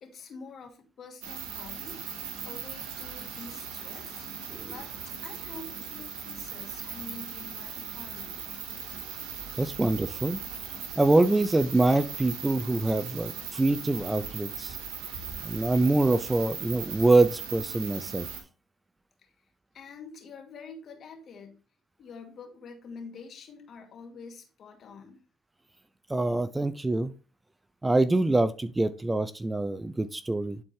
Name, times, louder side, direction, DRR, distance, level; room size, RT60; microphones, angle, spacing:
voice 1, 0.0-2.0 2.4-4.3 4.6-8.4 19.2-19.3 19.7-21.6 22.0-25.2, left 4 dB, 55° left, 3 dB, 2.2 m, -46 dB
sound 1, 1.2-18.4, right 7 dB, 85° right, 1.8 m, -39 dB
voice 2, 9.6-10.4 11.0-14.8 15.4-18.3 26.1-27.1 27.8-30.6, right 2 dB, 15° right, 13 dB, 0.5 m, -25 dB
11.0 x 4.3 x 3.3 m, 0.35 s
supercardioid pair, 75°, 0 cm